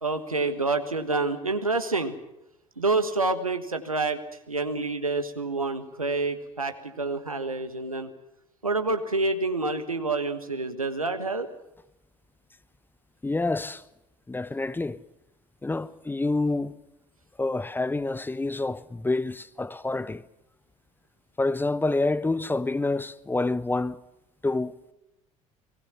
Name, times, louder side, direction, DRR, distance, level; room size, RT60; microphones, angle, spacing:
voice 1, 0.0-2.1 2.8-8.1 8.6-11.5, right 3 dB, 85° right, 1.5 m, -28 dB
voice 2, 13.2-13.8 14.3-15.0 15.6-16.7 17.4-20.2 21.4-24.0 24.4-24.9, left 2 dB, 10° left, 0.9 m, -27 dB
30.0 x 20.0 x 5.9 m
figure-of-eight pair, 60°, 18 cm